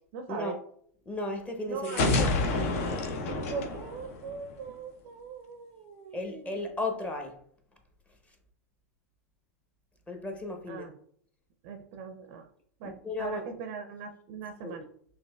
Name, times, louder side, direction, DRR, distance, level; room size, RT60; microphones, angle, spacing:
voice 1, 0.1-0.6 1.7-2.2 3.3-6.6 10.7-10.9 11.6-12.5 12.8-14.9, right 5 dB, 55° right, 7 dB, 0.5 m, -40 dB
voice 2, 1.1-2.3 6.1-7.3 10.1-10.9 12.8-13.5 14.6-14.8, left 2 dB, 15° left, 3 dB, 0.8 m, -35 dB
sound 1, 1.8-4.7, left 2 dB, 60° left, 0.7 m, -28 dB
5.9 x 2.5 x 2.2 m, 0.63 s
hypercardioid pair, 100°, 9 cm